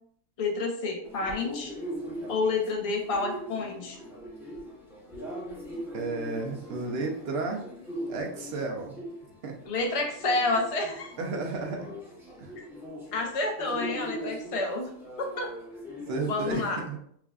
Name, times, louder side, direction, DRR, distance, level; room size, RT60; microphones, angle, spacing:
voice 1, 0.4-1.7 2.3-4.0 9.7-11.1 13.1-14.9 15.2-15.5 16.2-16.8, left 3 dB, 50° left, 2 dB, 0.4 m, -29 dB
sound 1, 1.0-16.6, equal, ahead, 0.6 m, -41 dB
voice 2, 5.9-7.6 8.1-9.0 9.4-9.6 11.2-11.9 12.4-12.5 16.1-17.0, right 3 dB, 60° right, 2 dB, 0.7 m, -32 dB
4.6 x 2.3 x 2.3 m, 0.65 s
omnidirectional pair, 1.5 m